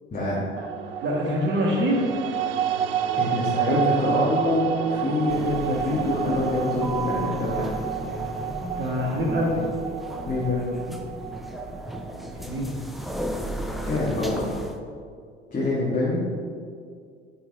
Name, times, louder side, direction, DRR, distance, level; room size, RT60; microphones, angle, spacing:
sound 1, 0.6-12.8, right 9 dB, 60° right, 0.5 m, -30 dB
voice 1, 1.0-2.1 3.7-4.0 8.8-9.7 12.4-12.8, equal, 35° right, -1 dB, 1.8 m, -25 dB
voice 2, 3.2-7.6 10.3-10.6 13.9-14.5 15.5-16.2, left 2 dB, 25° left, -8 dB, 1.8 m, -25 dB
sound 2, 5.3-14.8, right 1 dB, ahead, 0.4 m, -34 dB
9.9 x 4.6 x 3.6 m, 2.2 s
figure-of-eight pair, 60°, 32 cm